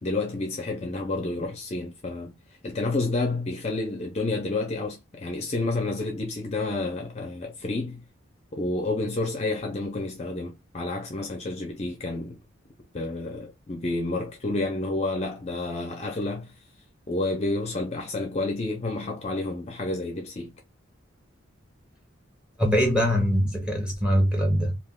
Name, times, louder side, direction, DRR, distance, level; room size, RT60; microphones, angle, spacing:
voice 1, 0.0-2.4 2.6-8.0 8.5-12.4 12.9-16.5 17.1-20.5, left 2 dB, 30° left, 0.4 m, -30 dB
voice 2, 22.6-24.8, equal, 5° right, 0.8 m, -22 dB
2.3 x 2.3 x 3.4 m
head